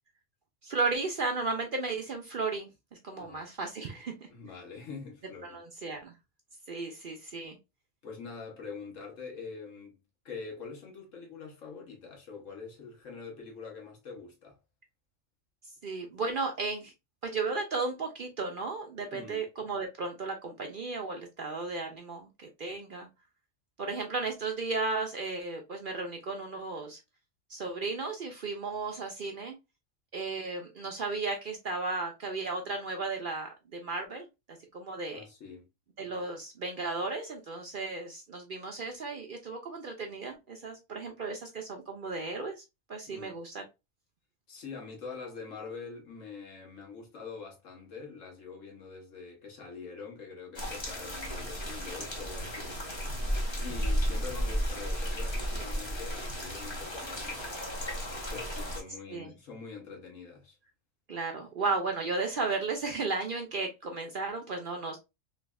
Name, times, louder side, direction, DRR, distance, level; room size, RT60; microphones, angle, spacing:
voice 1, 0.6-2.7 3.0-4.5 5.4-6.1 6.7-7.6 15.8-16.9 17.2-23.1 23.8-27.0 27.5-29.6 30.1-34.3 34.7-35.2 36.0-42.6 42.9-43.6 59.1-59.3 61.1-65.0, right 3 dB, 55° right, 0.6 m, -34 dB
voice 2, 4.3-5.6 8.0-10.0 10.2-14.6 19.1-19.4 35.1-35.7 43.1-43.3 44.5-52.8 53.6-57.5 58.3-60.6, left 5 dB, 75° left, 1.5 m, -44 dB
sound 1, 50.6-58.8, equal, 25° left, 0.7 m, -34 dB
3.3 x 3.1 x 2.3 m
omnidirectional pair, 1.3 m